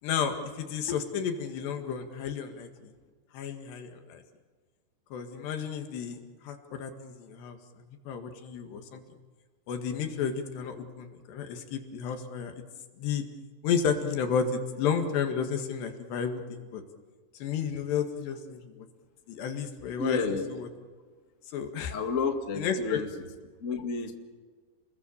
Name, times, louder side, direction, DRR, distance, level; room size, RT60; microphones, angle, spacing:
voice 1, 0.0-2.9 3.3-4.2 5.1-7.6 8.1-9.0 9.7-12.6 13.0-13.2 13.6-16.8 17.4-18.6 19.3-20.2 20.5-20.7 21.5-21.9 22.6-23.0, left 7 dB, 85° left, 6 dB, 4.1 m, -32 dB
voice 2, 20.0-20.6 21.9-23.1 23.6-24.1, left 4 dB, 40° left, 5 dB, 1.1 m, -30 dB
29.0 x 21.5 x 7.2 m, 1.5 s
omnidirectional pair, 4.8 m